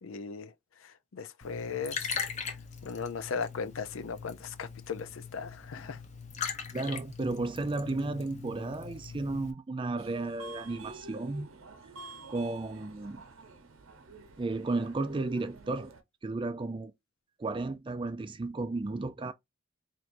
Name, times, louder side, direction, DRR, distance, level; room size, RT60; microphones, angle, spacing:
voice 1, 0.0-0.5 0.8-2.1 2.8-6.0, left 5 dB, 85° left, 0.5 m, -37 dB
Liquid, 1.4-9.5, left 6 dB, 35° left, 0.7 m, -41 dB
voice 2, 6.7-11.5 12.3-13.2 14.4-15.9 16.2-16.9 17.4-19.3, right 2 dB, 25° right, 0.4 m, -33 dB
Subway metro underground, 10.0-16.0, right 3 dB, 85° right, 0.8 m, -50 dB
4.5 x 3.0 x 2.6 m
head